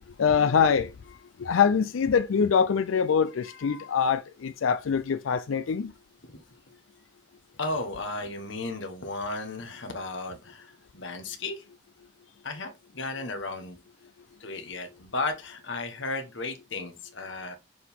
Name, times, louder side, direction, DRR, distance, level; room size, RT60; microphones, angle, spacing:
voice 1, 0.2-0.9 1.4-5.9, left 6 dB, 90° left, 0.4 m, -24 dB
voice 2, 3.5-3.9 6.2-6.3 7.6-11.6 12.4-13.8 14.4-17.5, left 2 dB, 70° left, 1.3 m, -35 dB
6.3 x 4.6 x 3.6 m
head